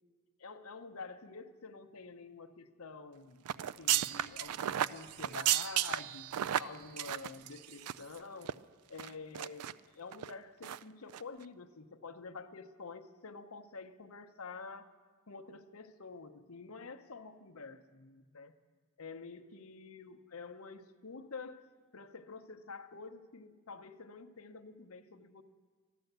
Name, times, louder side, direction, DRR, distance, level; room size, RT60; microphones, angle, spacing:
voice 1, 0.4-3.5 3.8-6.3 6.6-8.5 8.9-14.8 15.3-18.6 19.0-21.7 21.9-25.4, left 4 dB, 70° left, 8 dB, 0.8 m, -48 dB
sound 1, 3.5-8.2 8.4-8.5 9.0-9.7 10.1-10.3 10.6-10.8 11.1-11.2, right 12 dB, 90° right, 0.4 m, -34 dB
13.5 x 11.0 x 8.0 m, 1.5 s
head